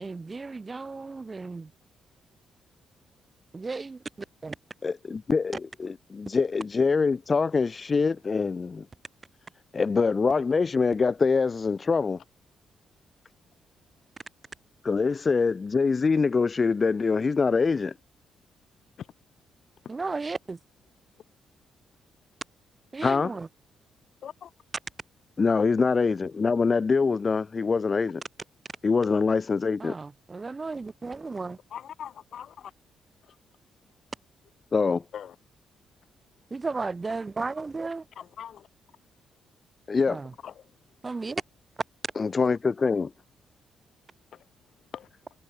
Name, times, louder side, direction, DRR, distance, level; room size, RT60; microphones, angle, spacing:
voice 1, 0.0-1.7 3.5-4.0 4.4-4.5 19.9-20.6 22.9-23.5 29.8-31.6 36.5-38.1 40.1-40.3 41.0-41.4, right 3 dB, 25° right, 1.2 m, -34 dB
voice 2, 4.8-8.9 9.7-12.2 14.8-17.9 23.0-23.3 25.4-28.2 28.8-30.0 34.7-35.0 39.9-40.2 42.2-43.1, left 4 dB, 30° left, 0.5 m, -24 dB
voice 3, 31.7-32.7 35.1-35.3 38.4-38.7 40.4-40.5 42.4-42.5 44.9-45.1, left 9 dB, 60° left, 2.9 m, -40 dB
cardioid pair, 130°, 0 cm